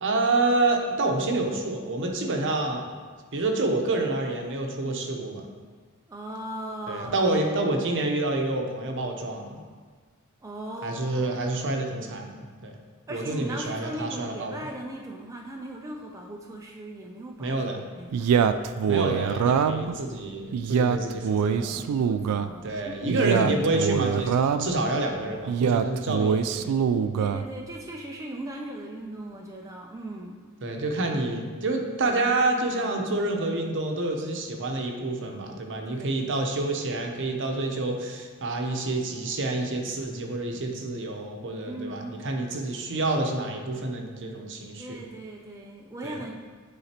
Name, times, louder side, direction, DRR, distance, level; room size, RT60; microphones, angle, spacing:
voice 1, 0.0-2.9 3.3-5.4 6.9-9.6 10.8-12.7 13.1-14.7 17.4-17.8 18.9-21.8 22.6-26.7 30.6-45.0 46.0-46.2, right 2 dB, 60° right, 2 dB, 0.8 m, -28 dB
voice 2, 6.1-7.3 10.4-11.3 13.1-18.4 21.7-23.9 27.1-30.4 35.9-36.3 41.6-42.2 44.8-46.3, right 1 dB, 15° right, 0 dB, 0.4 m, -39 dB
Male speech man speaking, 18.1-19.9 20.5-22.5 23.1-24.8 25.5-27.5, right 7 dB, 85° right, 0.3 m, -24 dB
9.8 x 3.8 x 2.9 m, 1.5 s
head